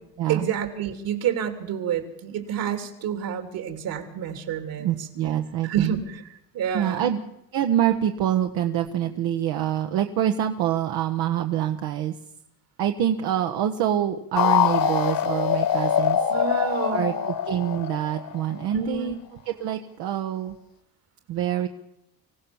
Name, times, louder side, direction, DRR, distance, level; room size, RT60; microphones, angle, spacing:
voice 1, 0.3-5.1 5.6-6.2 6.5-7.1 16.3-17.1 18.7-19.1, right 8 dB, 70° right, 7 dB, 3.5 m, -29 dB
voice 2, 4.8-5.9 6.7-7.2 7.5-12.2 12.8-16.2 16.9-19.2 19.4-20.6 21.3-21.7, right 11 dB, 90° right, 5 dB, 1.4 m, -25 dB
sound 1, 14.4-18.8, left 9 dB, 65° left, 1.6 m, -23 dB
25.5 x 16.0 x 7.2 m, 0.82 s
cardioid pair, 125°, 37 cm